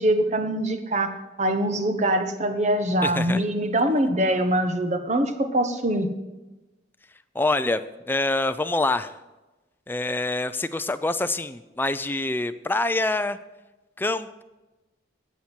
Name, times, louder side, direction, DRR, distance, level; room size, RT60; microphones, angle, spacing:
voice 1, 0.0-6.1, right 1 dB, 40° right, 7 dB, 1.0 m, -23 dB
voice 2, 3.0-3.4 7.3-7.8 8.1-9.1 9.9-13.4 14.0-14.4, left 2 dB, 10° left, 11 dB, 0.4 m, -25 dB
18.0 x 7.3 x 4.4 m, 1.1 s
head